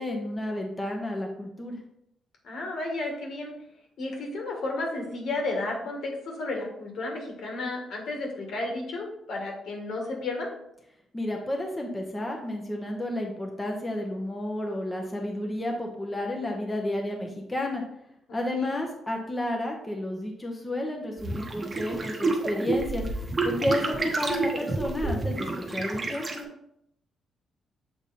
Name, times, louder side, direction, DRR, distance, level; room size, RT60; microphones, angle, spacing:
voice 1, 0.0-1.8 11.1-17.8 18.3-23.1 23.4-26.5, left 1 dB, 15° left, 1 dB, 0.9 m, -31 dB
voice 2, 2.4-3.5 4.0-10.5 18.3-18.7, left 2 dB, 70° left, 1 dB, 1.6 m, -32 dB
sound 1, 21.2-26.4, right 3 dB, 25° right, 1.0 m, -29 dB
7.1 x 3.5 x 4.2 m, 0.76 s
cardioid pair, 120°, 0 cm